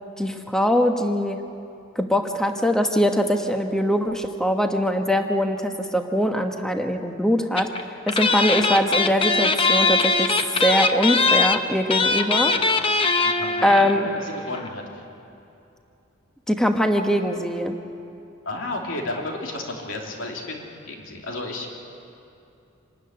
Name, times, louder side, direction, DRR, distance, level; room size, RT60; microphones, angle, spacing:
voice 1, 0.2-1.4 2.0-7.7 8.1-10.3 10.6-12.5 13.6-14.1 16.5-17.8, equal, 5° left, 4 dB, 1.2 m, -22 dB
sound 1, 7.6-7.8 8.1-14.0 14.2-14.3 14.5-14.7, left 3 dB, 25° left, 0.9 m, -21 dB
voice 2, 13.2-15.1 18.4-21.7, left 2 dB, 70° left, 0 dB, 3.2 m, -33 dB
26.5 x 12.5 x 9.6 m, 2.7 s
head